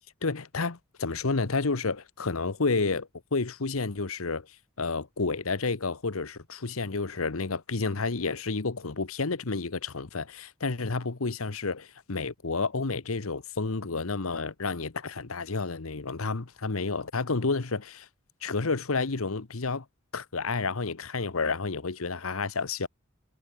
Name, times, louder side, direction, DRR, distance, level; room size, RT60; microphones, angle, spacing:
voice 1, 0.0-4.5 4.8-18.1 18.4-19.8 20.1-22.9, left 4 dB, 75° left, 1.1 m, -30 dB
head